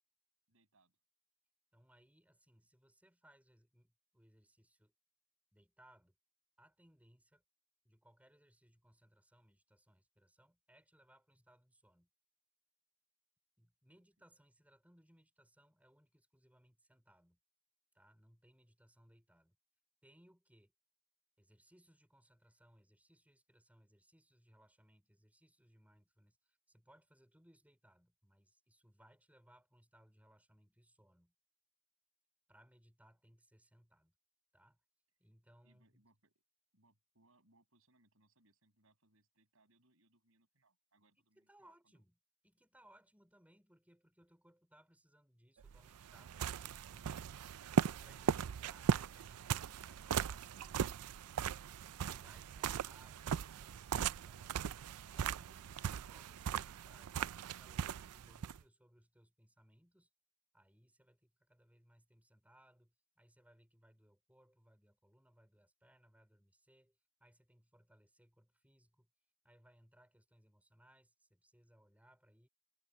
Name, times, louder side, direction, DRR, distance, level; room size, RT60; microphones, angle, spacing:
voice 1, 0.5-1.0 13.9-14.3 35.6-36.4 36.7-42.0, right 2 dB, 65° right, 7.7 m, -74 dB
voice 2, 1.7-4.9 5.5-6.1 6.6-7.4 7.8-12.1 13.6-17.4 17.9-19.6 20.0-20.7 21.4-31.3 32.5-34.1 34.5-34.8 35.2-36.0 41.2-42.1 42.4-47.4 47.7-51.0 51.9-54.7 55.1-60.1 60.5-69.1 69.4-72.5, right 1 dB, 5° right, 5.2 m, -68 dB
sound 1, 45.6-58.6, right 7 dB, 90° right, 0.4 m, -38 dB
head